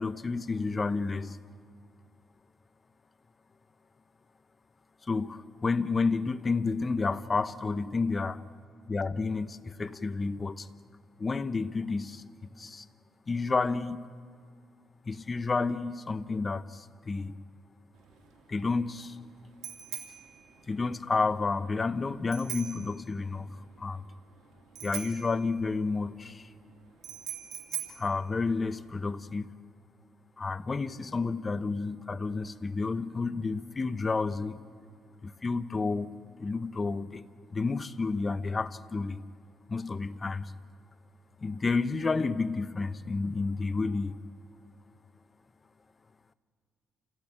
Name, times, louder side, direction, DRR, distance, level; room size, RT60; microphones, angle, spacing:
voice 1, 0.0-1.4 5.1-8.4 8.9-10.7 11.2-12.8 13.3-14.1 15.1-17.4 18.5-19.2 20.7-24.0 24.8-26.5 28.0-29.5 30.4-34.6 35.2-36.1 36.4-37.3 37.5-39.2 39.7-40.5 41.4-44.2, left 4 dB, 30° left, 13 dB, 0.9 m, -30 dB
Bicycle bell, 18.0-29.1, right 9 dB, 80° right, 2.6 m, -43 dB
28.0 x 16.0 x 8.8 m, 2.1 s
cardioid pair, 90°, 0 cm